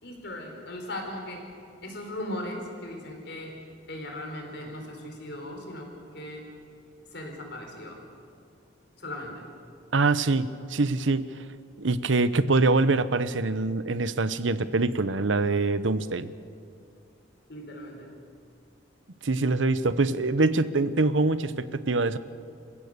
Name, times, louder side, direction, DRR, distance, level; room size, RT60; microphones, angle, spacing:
voice 1, 0.0-1.5 1.8-3.5 3.9-6.4 7.1-8.0 9.0-9.5 17.5-18.1, left 1 dB, 60° left, 2 dB, 4.6 m, -38 dB
voice 2, 9.9-11.2 11.8-16.3 19.2-22.2, right 3 dB, 80° right, 14 dB, 0.8 m, -24 dB
27.5 x 15.5 x 6.8 m, 2.5 s
head